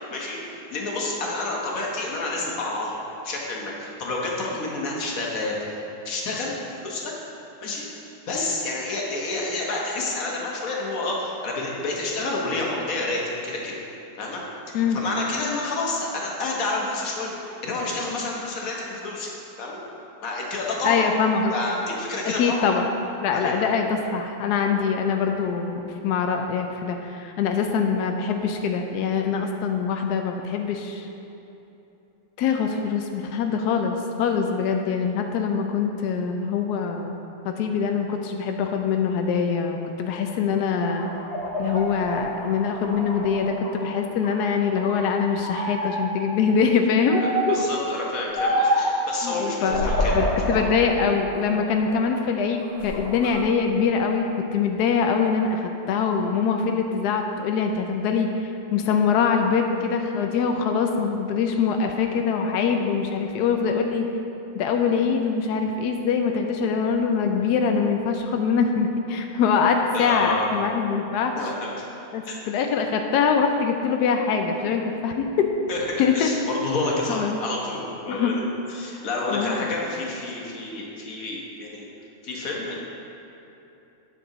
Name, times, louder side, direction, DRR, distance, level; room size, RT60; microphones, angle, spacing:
voice 1, 0.7-3.0 3.2-7.1 7.6-7.9 8.3-13.7 14.2-14.4 14.9-19.3 19.6-19.8 20.2-21.1 21.5-22.7 23.3-23.6 47.2-50.5 69.9-70.5 71.4-71.9 72.2-72.4 75.7-76.3 76.6-81.9 82.2-82.8, left 2 dB, 50° left, -2 dB, 1.4 m, -29 dB
voice 2, 20.8-21.5 22.2-22.9 23.2-31.1 32.4-37.2 37.4-41.1 41.6-47.6 49.2-64.1 64.6-71.4 72.1-75.5 76.0-76.3 77.1-77.4 78.1-78.3 79.3-79.7, left 6 dB, 85° left, 4 dB, 0.8 m, -23 dB
sound 1, 40.6-43.8 44.2-45.0 45.4-46.1 47.1-47.6 48.4-48.9 49.7-50.7 51.2-52.2 52.6-53.3, equal, 70° left, 2.3 m, -27 dB
9.2 x 6.2 x 3.9 m, 2.9 s
omnidirectional pair, 2.3 m